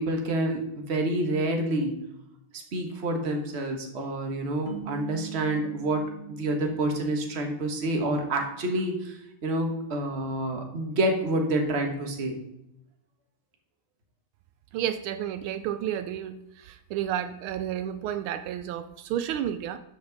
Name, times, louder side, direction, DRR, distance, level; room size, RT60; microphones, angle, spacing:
voice 1, 0.0-1.9 2.7-6.0 6.3-9.1 9.4-12.4, right 1 dB, 35° right, 3 dB, 1.3 m, -28 dB
sound 1, 4.7-8.0, right 8 dB, 55° left, 0.7 m, -43 dB
voice 2, 14.7-19.8, right 10 dB, 80° right, 11 dB, 1.4 m, -31 dB
13.0 x 5.2 x 4.0 m, 0.83 s
omnidirectional pair, 2.3 m